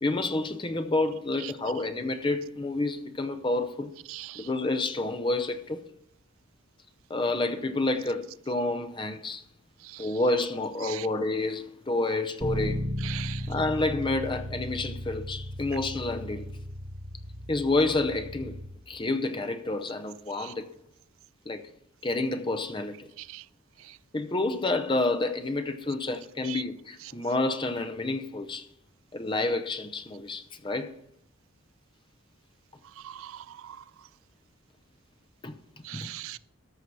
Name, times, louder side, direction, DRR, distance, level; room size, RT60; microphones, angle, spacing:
voice 1, 0.0-3.9 4.4-5.8 7.1-9.4 10.0-12.9 13.5-16.5 17.5-18.6 18.9-20.7 21.5-21.6 22.0-23.1 24.1-28.7 29.1-30.9 35.4-35.5 35.9-36.1, left 2 dB, 25° left, 0.6 m, -29 dB
voice 2, 4.1-4.4 10.8-11.0 13.0-13.4 20.4-20.5 23.3-23.4 26.5-26.6 33.0-33.4 35.9-36.4, right 15 dB, 75° right, 0.3 m, -39 dB
Bass guitar, 12.4-18.6, equal, 25° right, 1.9 m, -35 dB
13.5 x 5.7 x 4.6 m
head